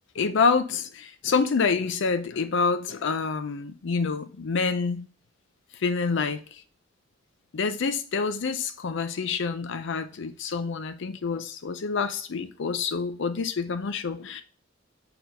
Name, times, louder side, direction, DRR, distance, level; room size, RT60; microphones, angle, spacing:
voice 1, 0.1-5.1 5.7-6.6 7.5-14.4, left 5 dB, 65° left, 0.5 m, -27 dB
4.3 x 4.2 x 5.2 m
head